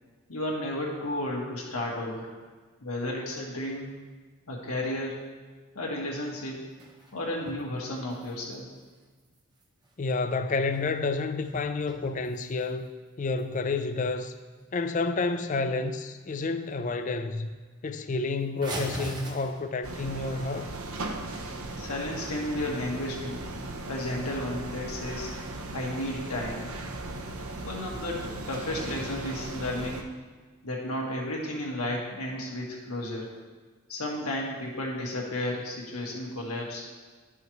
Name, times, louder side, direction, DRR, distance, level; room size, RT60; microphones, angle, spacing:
voice 1, 0.3-2.3 2.8-4.0 4.5-5.2 5.8-6.7 7.1-8.7 21.3-23.4 23.9-25.3 25.7-26.7 27.6-30.1 30.6-33.3 33.9-36.8, left 1 dB, 80° left, -2 dB, 1.7 m, -33 dB
sound 1, 6.4-7.7 8.0-9.9 10.5-11.2 11.4-12.8 13.4-13.5 13.9-14.1 14.5-14.7 14.9-15.4 15.8-16.3 16.6-16.7 17.1-17.2 17.5-17.6 18.6-20.0 23.2-23.9, right 2 dB, 20° right, 0.8 m, -41 dB
voice 2, 10.0-12.9 13.2-14.3 14.7-17.5 17.8-20.7, left 3 dB, 35° left, 9 dB, 0.4 m, -29 dB
sound 2, 19.8-30.0, right 2 dB, 75° right, 0.7 m, -37 dB
11.5 x 5.5 x 3.1 m, 1.4 s
head